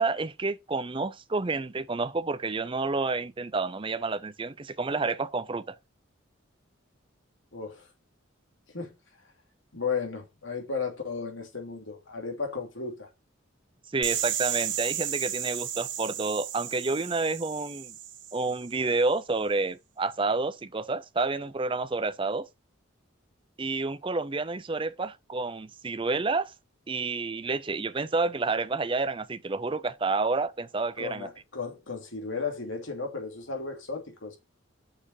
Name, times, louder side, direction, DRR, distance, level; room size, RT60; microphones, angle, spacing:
voice 1, 0.0-5.8 13.9-17.9 18.3-22.5 23.6-26.5 26.9-31.3, right 3 dB, 25° right, 0.5 m, -29 dB
voice 2, 7.5-7.9 8.7-8.9 9.7-13.1 31.0-34.4, left 5 dB, 75° left, 2.7 m, -34 dB
sound 1, 14.0-18.8, right 10 dB, 60° right, 1.4 m, -33 dB
6.6 x 5.0 x 6.9 m
head